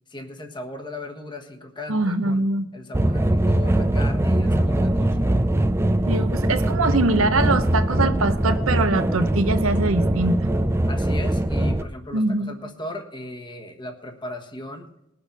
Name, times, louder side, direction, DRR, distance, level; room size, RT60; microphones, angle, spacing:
voice 1, 0.1-2.4 2.7-5.4 10.9-14.9, left 2 dB, 25° left, 4 dB, 1.4 m, -37 dB
voice 2, 1.9-2.7 6.1-10.4 12.1-12.5, right 2 dB, 80° right, 9 dB, 1.0 m, -22 dB
sound 1, 2.9-11.8, right 1 dB, 15° right, 0.5 m, -21 dB
20.0 x 6.9 x 5.4 m, 0.86 s
head